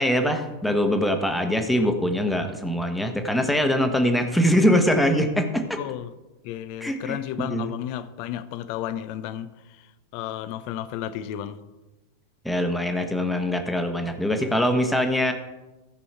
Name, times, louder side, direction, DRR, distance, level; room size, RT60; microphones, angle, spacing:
voice 1, 0.0-5.6 6.8-7.2 7.4-7.7 12.4-15.3, equal, 5° left, 1.2 m, -23 dB
voice 2, 5.8-6.1 6.4-9.5 10.1-11.6, left 11 dB, 45° left, 0.6 m, -32 dB
14.5 x 5.3 x 4.6 m
figure-of-eight pair, 90°, 0 cm